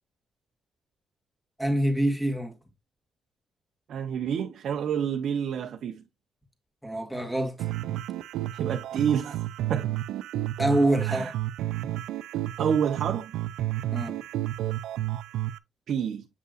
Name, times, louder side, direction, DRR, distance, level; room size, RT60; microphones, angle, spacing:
voice 1, 1.6-2.5 6.8-7.6 10.6-11.3 13.9-14.2, right 1 dB, ahead, 2.0 m, -25 dB
voice 2, 3.9-6.0 8.5-9.4 9.7-9.9 11.1-11.3 12.6-13.3 15.9-16.3, right 8 dB, 65° right, 0.8 m, -28 dB
sound 1, 7.6-15.6, right 14 dB, 85° right, 0.4 m, -31 dB
8.1 x 5.5 x 2.5 m
cardioid pair, 90°, 0 cm